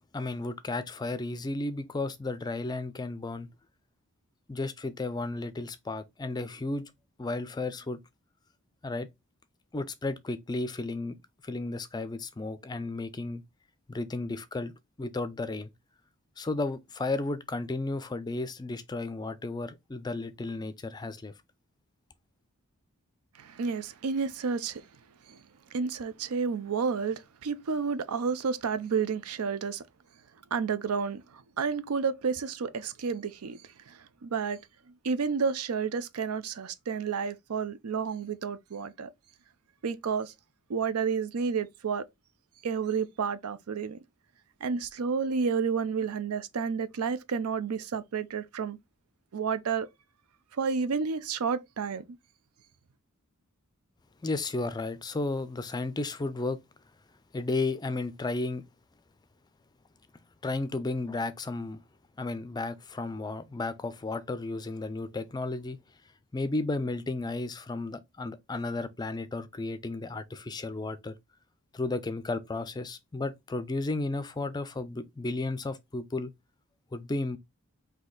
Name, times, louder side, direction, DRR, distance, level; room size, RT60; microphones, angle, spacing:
voice 1, 0.1-3.5 4.5-6.8 7.2-8.0 8.8-9.1 9.7-11.2 11.4-13.4 13.9-14.7 15.0-15.7 16.4-21.3 54.2-56.6 57.3-58.6 60.4-61.8 62.2-65.8 66.3-71.1 71.7-76.3 76.9-77.4, left 2 dB, 20° left, 0.4 m, -33 dB
voice 2, 23.4-24.8 25.3-25.4 25.7-29.8 30.5-33.6 33.9-34.6 35.0-39.1 39.8-40.3 40.7-42.0 42.6-44.0 44.6-48.8 49.3-49.9 50.6-52.0, right 5 dB, 90° right, 0.5 m, -30 dB
4.1 x 2.8 x 3.8 m
head